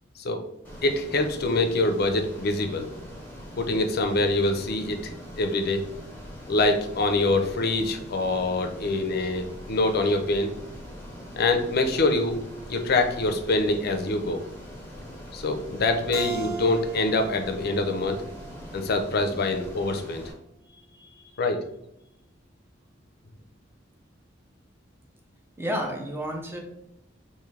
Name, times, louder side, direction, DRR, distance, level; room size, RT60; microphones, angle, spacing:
Ocean, 0.6-20.3, equal, 10° left, 1.0 m, -42 dB
voice 1, 0.8-2.9 3.6-5.8 6.5-10.5 11.4-12.4 12.7-14.4 15.3-18.2 18.7-20.2 21.4-21.6, left 2 dB, 55° left, 6 dB, 0.5 m, -25 dB
Keyboard (musical), 16.1-19.4, right 5 dB, 85° right, 0.8 m, -38 dB
voice 2, 20.7-21.4 25.6-26.6, equal, 15° right, 2 dB, 0.6 m, -33 dB
3.6 x 2.6 x 3.2 m, 0.79 s
head